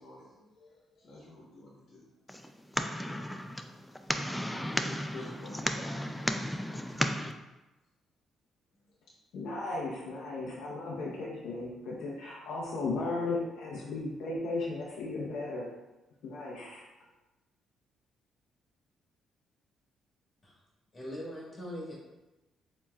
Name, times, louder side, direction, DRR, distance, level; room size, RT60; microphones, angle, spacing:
voice 1, 0.0-2.0 2.9-3.4 4.0-7.1, left 1 dB, 55° left, -4 dB, 1.2 m, -50 dB
sound 1, 2.3-7.3, equal, 5° left, 0.4 m, -34 dB
voice 2, 9.3-15.7 16.2-16.8, left 3 dB, 80° left, -4 dB, 0.7 m, -35 dB
voice 3, 20.9-21.9, equal, 35° left, -5 dB, 1.5 m, -41 dB
7.0 x 3.0 x 2.4 m, 1.0 s
cardioid pair, 90°, 0 cm